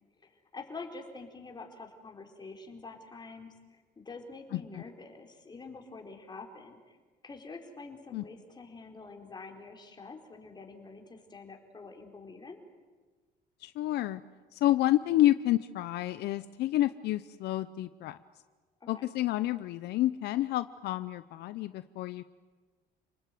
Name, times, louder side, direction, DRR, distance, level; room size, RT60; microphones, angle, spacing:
voice 1, 0.2-7.0 7.2-12.6 18.8-19.1, left 3 dB, 25° left, 3 dB, 4.4 m, -46 dB
voice 2, 13.6-14.2 14.5-18.2 18.9-22.2, left 14 dB, 75° left, 13 dB, 0.8 m, -29 dB
29.5 x 19.5 x 9.4 m, 1.3 s
cardioid pair, 110°, 17 cm